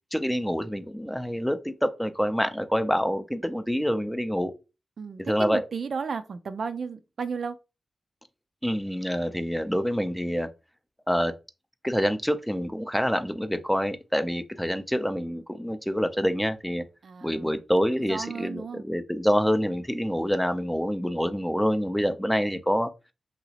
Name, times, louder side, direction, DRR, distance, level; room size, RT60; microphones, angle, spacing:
voice 1, 0.1-4.5 5.3-5.6 8.6-10.5 11.1-11.3 11.8-16.8 17.2-22.9, equal, 5° left, 0.4 m, -26 dB
voice 2, 5.0-7.6 17.0-17.5 18.0-18.8, right 5 dB, 70° right, 0.3 m, -34 dB
3.0 x 2.9 x 2.8 m
wide cardioid pair, 85°, 0 cm